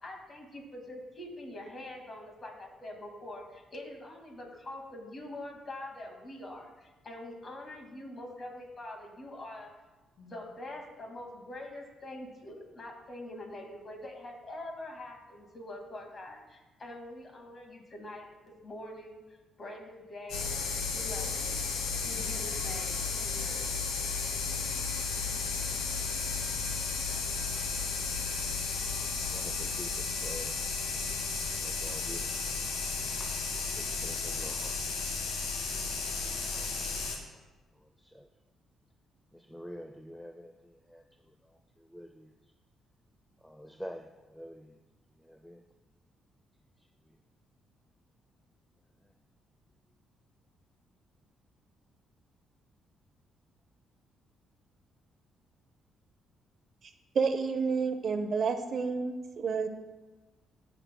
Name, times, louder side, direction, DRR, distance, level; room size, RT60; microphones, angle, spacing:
voice 1, 0.0-9.7 10.2-19.2 19.6-20.5 20.9-21.6 22.0-23.7, left 1 dB, 40° left, 1 dB, 1.9 m, -44 dB
sound 1, 20.3-37.2, left 4 dB, 90° left, 1.3 m, -33 dB
voice 2, 29.3-30.5 31.6-32.5 33.2-33.4 33.8-34.8 35.8-36.1 36.5-37.1 38.1-38.3 39.3-41.0 41.9-42.3 43.4-44.7 45.3-45.6, equal, 5° left, 4 dB, 0.4 m, -47 dB
voice 3, 57.2-59.7, right 5 dB, 55° right, 8 dB, 0.6 m, -30 dB
18.0 x 6.1 x 2.2 m, 1.2 s
cardioid pair, 90°, 0 cm